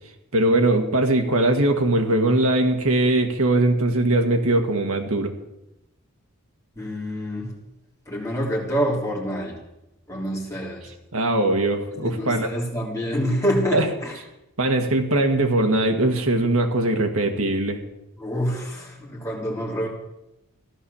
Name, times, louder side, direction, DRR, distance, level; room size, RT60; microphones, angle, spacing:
voice 1, 0.3-5.3 11.1-12.5 13.7-13.9 14.6-17.8, right 2 dB, 75° right, 5 dB, 1.8 m, -21 dB
voice 2, 6.8-7.6 8.1-9.6 10.1-10.8 11.9-14.2 18.2-19.9, equal, 15° left, -3 dB, 3.4 m, -27 dB
15.5 x 11.5 x 7.2 m, 0.91 s
head